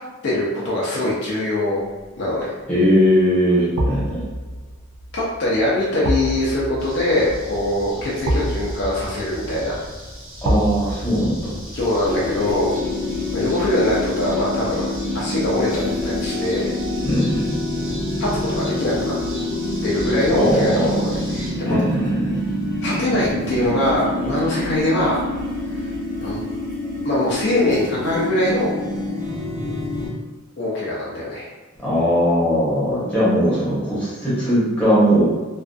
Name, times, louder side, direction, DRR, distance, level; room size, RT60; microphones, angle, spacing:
voice 1, 0.2-1.8 2.2-2.5 5.1-9.8 11.7-12.7 13.3-14.9 15.1-16.7 18.2-19.1 19.8-21.8 22.8-25.2 26.2-26.4 27.0-28.7 30.6-31.5, left 1 dB, 55° left, -6 dB, 0.4 m, -22 dB
sound 1, 2.0-2.4 3.8-14.8 15.1-15.2, right 1 dB, 90° right, 0.4 m, -29 dB
voice 2, 2.7-4.2 10.4-11.6 17.0-17.5 20.3-21.0 21.6-22.4 31.8-35.2, equal, 5° left, -11 dB, 0.7 m, -19 dB
sound 2, 6.8-21.5, equal, 75° right, 0.8 m, -37 dB
sound 3, 12.0-30.1, left 1 dB, 40° right, 0.6 m, -26 dB
2.5 x 2.3 x 2.2 m, 1.3 s
head